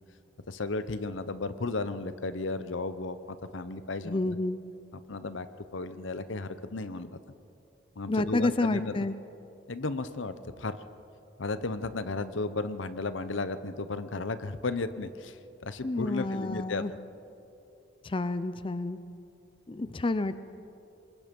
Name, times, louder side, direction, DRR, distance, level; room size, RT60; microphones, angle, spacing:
voice 1, 0.5-4.4 4.9-5.5 5.7-7.2 8.0-9.1 9.7-10.8 11.4-16.8, left 3 dB, 80° left, 12 dB, 0.9 m, -34 dB
voice 2, 4.1-4.6 8.1-9.1 15.8-16.9 18.0-19.0 19.7-20.4, left 2 dB, 25° left, 13 dB, 0.5 m, -29 dB
27.0 x 21.0 x 5.3 m, 2.8 s
head